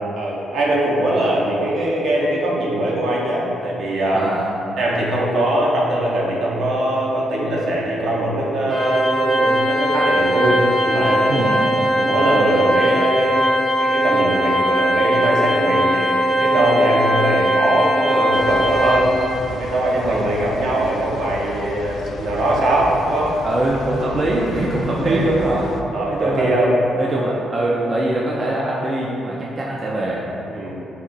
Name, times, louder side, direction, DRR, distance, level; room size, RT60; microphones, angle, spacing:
voice 1, 0.1-4.2 4.8-11.6 12.0-13.4 13.8-19.1 19.5-23.3 25.1-25.3 25.9-26.7 30.5-30.8, right 1 dB, 70° right, -4 dB, 0.8 m, -21 dB
voice 2, 4.1-4.5 11.3-11.7 20.0-20.3 23.4-25.7 26.1-26.6 27.0-30.2, right 1 dB, 35° right, -4 dB, 0.5 m, -22 dB
Organ, 8.7-19.5, equal, 5° left, 0.6 m, -19 dB
sound 1, 18.3-25.8, left 1 dB, 70° left, 0.3 m, -34 dB
4.0 x 2.5 x 3.9 m, 2.8 s
cardioid pair, 90°, 0 cm